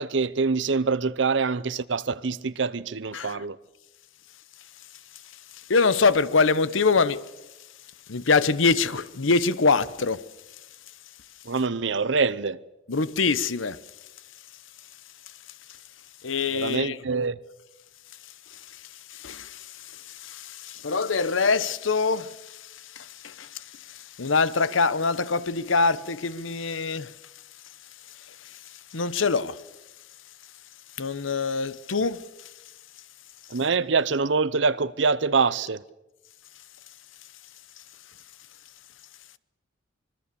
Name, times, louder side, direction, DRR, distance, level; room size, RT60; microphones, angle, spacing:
voice 1, 0.0-3.6 11.5-12.6 16.5-17.4 33.5-35.8, right 4 dB, 70° right, 0.7 m, -25 dB
voice 2, 5.7-7.2 8.1-10.2 12.9-13.8 16.2-17.0 19.1-22.6 22.9-27.1 28.9-29.6 31.0-32.2, left 4 dB, 90° left, 0.9 m, -24 dB
25.5 x 22.5 x 6.9 m
head